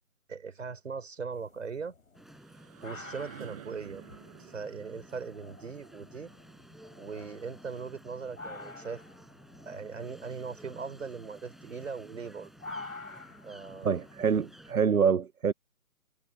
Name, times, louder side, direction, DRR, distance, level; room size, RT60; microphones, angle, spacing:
voice 1, 0.3-1.9 2.8-4.0 4.4-6.3 7.0-9.0 9.7-12.5 13.4-13.9, right 5 dB, 60° right, 4.3 m, -39 dB
sound 1, 1.3-14.8, left 3 dB, 65° left, 4.4 m, -50 dB
sound 2, 2.0-7.8, right 14 dB, 25° right, 5.4 m, -53 dB
sound 3, 2.1-14.7, right 1 dB, ahead, 6.6 m, -54 dB
voice 2, 13.8-15.5, right 6 dB, 75° right, 1.0 m, -26 dB
figure-of-eight pair, 155°, 43 cm